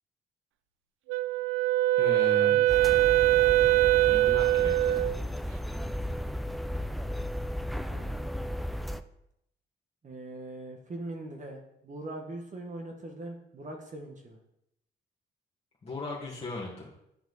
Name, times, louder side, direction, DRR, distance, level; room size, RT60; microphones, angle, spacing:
Wind instrument woodwind instrument, 1.1-5.2, right 15 dB, 85° right, 0.5 m, -23 dB
voice 1, 2.0-2.6 4.1-5.1 15.8-16.9, left 2 dB, 30° left, -5 dB, 1.8 m, -37 dB
sound 1, 2.7-9.0, equal, ahead, 0.3 m, -34 dB
voice 2, 7.9-8.3 10.0-14.4, right 2 dB, 40° right, 2 dB, 1.3 m, -41 dB
10.0 x 4.4 x 4.0 m, 0.81 s
cardioid pair, 90°, 20 cm